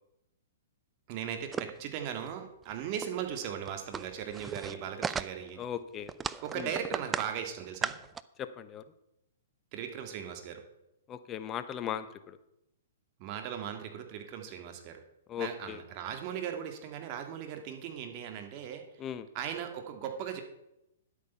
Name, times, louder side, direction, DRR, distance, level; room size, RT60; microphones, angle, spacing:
voice 1, 1.1-5.6 6.4-8.0 9.7-10.6 13.2-15.0 15.4-18.8 19.3-20.4, right 8 dB, 40° right, 5 dB, 2.1 m, -38 dB
sound 1, 1.5-1.8 2.3-2.4 2.6-2.7 3.0-3.1 3.4-5.6 6.1-7.3 7.6-8.2, right 6 dB, 15° right, 0.4 m, -36 dB
voice 2, 5.6-6.1 6.5-6.7 8.4-8.8 11.1-12.4 15.3-15.8 19.0-19.3, left 9 dB, 25° left, 11 dB, 0.9 m, -38 dB
11.0 x 8.4 x 5.7 m, 0.84 s
hypercardioid pair, 130°, 0 cm